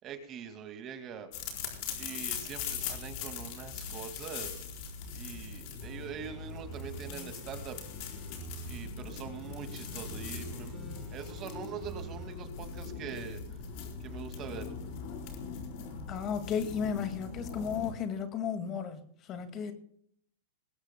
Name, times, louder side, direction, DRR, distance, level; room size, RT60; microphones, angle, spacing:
voice 1, 0.0-1.3 2.0-4.7 5.1-7.8 8.7-10.8 11.1-13.6 14.0-14.7, right 7 dB, 30° right, 7 dB, 2.2 m, -43 dB
sound 1, 1.3-17.9, left 6 dB, 50° left, 4.4 m, -41 dB
sound 2, 5.8-8.8 9.2-12.2 12.6-12.7, right 4 dB, 5° right, 4.6 m, -47 dB
voice 2, 16.1-19.7, left 7 dB, 30° left, 8 dB, 2.0 m, -34 dB
21.0 x 16.0 x 2.2 m, 0.63 s
hypercardioid pair, 140°, 0 cm